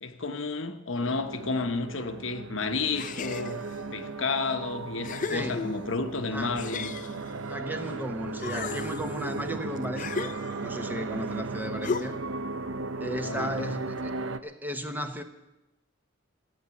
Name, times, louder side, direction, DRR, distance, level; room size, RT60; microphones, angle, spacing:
voice 1, 0.0-3.6 3.9-6.9 13.1-13.8, left 4 dB, 70° left, 1.0 m, -31 dB
sound 1, 1.0-14.4, right 3 dB, 70° right, 0.7 m, -36 dB
sound 2, 2.9-3.8 4.4-4.5 5.0-6.0 6.6-8.0 8.3-10.9 11.8-12.4, left 5 dB, 40° left, 0.5 m, -36 dB
voice 2, 5.3-5.7 6.3-6.6 7.5-10.3 10.6-12.2 13.0-14.2 14.4-15.2, equal, 10° right, 1.1 m, -35 dB
14.5 x 8.1 x 9.6 m
head